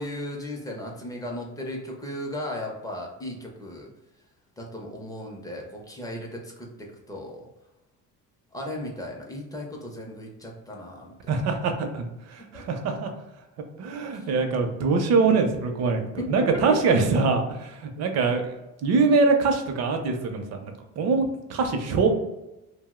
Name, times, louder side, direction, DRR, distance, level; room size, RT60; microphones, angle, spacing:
voice 1, 0.0-3.9 4.6-7.4 8.5-11.3 12.5-12.8 14.1-14.5 16.2-16.3 16.7-16.9, left 1 dB, 10° left, -1 dB, 0.4 m, -36 dB
voice 2, 11.3-13.1 13.8-18.6 18.8-22.1, right 4 dB, 50° right, 5 dB, 0.5 m, -23 dB
2.6 x 2.0 x 3.5 m, 0.98 s
cardioid pair, 140°, 33 cm